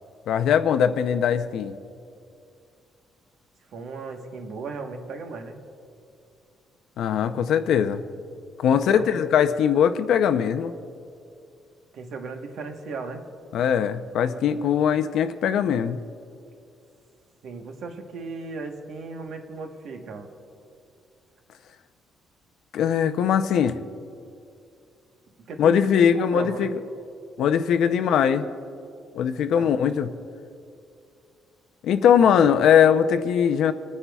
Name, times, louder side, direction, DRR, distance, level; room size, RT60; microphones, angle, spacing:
voice 1, 0.3-1.7 7.0-8.0 8.6-10.7 13.5-16.0 22.7-23.8 25.6-26.8 27.4-28.5 29.1-30.1 31.8-33.7, left 8 dB, 65° left, 9 dB, 0.6 m, -21 dB
voice 2, 3.7-5.6 8.7-9.1 11.9-13.2 17.4-20.3 25.5-26.7 29.4-29.7 32.3-32.5, right 4 dB, 60° right, 4 dB, 1.2 m, -36 dB
29.0 x 9.8 x 2.3 m, 2.4 s
cardioid pair, 155°, 0 cm